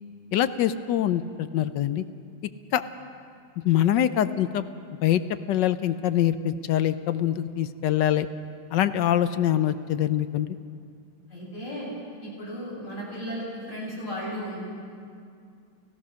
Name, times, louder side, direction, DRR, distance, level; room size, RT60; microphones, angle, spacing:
voice 1, 0.3-2.0 2.7-2.8 3.6-4.6 5.0-8.3 8.7-10.6, left 11 dB, 75° left, 12 dB, 1.3 m, -24 dB
voice 2, 11.3-11.9 12.2-14.6, equal, 40° left, -6 dB, 8.4 m, -35 dB
30.0 x 16.5 x 6.3 m, 2.3 s
omnidirectional pair, 2.1 m